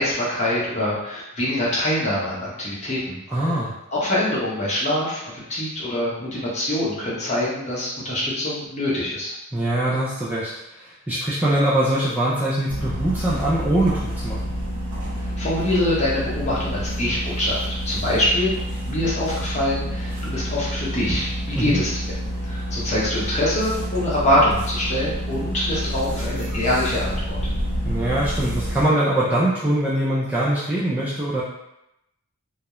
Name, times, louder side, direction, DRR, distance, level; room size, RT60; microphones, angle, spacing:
voice 1, 0.0-3.4 3.9-9.3 15.2-18.5 18.8-21.9 22.4-27.4, left 1 dB, 30° left, -6 dB, 0.7 m, -24 dB
voice 2, 3.3-3.7 9.5-14.4 21.6-21.8 27.8-31.4, right 1 dB, 5° right, -8 dB, 0.3 m, -22 dB
sound 1, 12.7-28.8, equal, 85° right, 0.6 m, -28 dB
2.3 x 2.0 x 2.9 m, 0.85 s
head